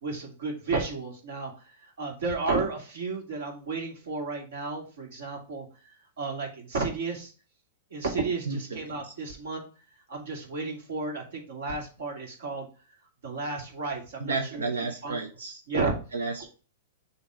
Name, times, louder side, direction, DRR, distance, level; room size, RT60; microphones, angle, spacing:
voice 1, 0.0-1.5 1.8-5.7 6.2-7.3 7.9-9.6 10.1-12.7 13.2-14.7 15.0-15.2 15.7-15.9, right 3 dB, 70° right, 1 dB, 2.4 m, -32 dB
voice 2, 14.2-15.6 16.1-16.5, right 3 dB, 90° right, 4 dB, 0.8 m, -31 dB
7.0 x 2.9 x 4.9 m, 0.36 s
hypercardioid pair, 120°, 0 cm